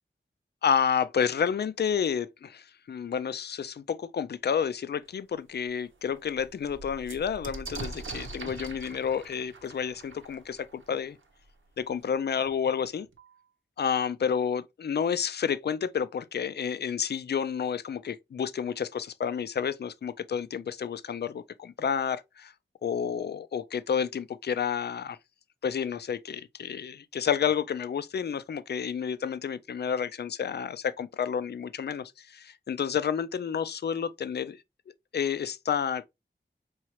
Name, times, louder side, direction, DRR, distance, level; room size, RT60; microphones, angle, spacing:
voice 1, 0.6-11.2 11.8-13.1 13.8-22.5 22.8-25.2 25.6-34.6 35.1-36.1, left 7 dB, 55° left, 0.4 m, -30 dB
sound 1, 5.0-5.1 5.6-5.7 5.9-11.5 12.5-12.6 12.8-13.4, right 3 dB, 80° right, 0.9 m, -43 dB
4.7 x 3.1 x 2.9 m
wide cardioid pair, 70°, 20 cm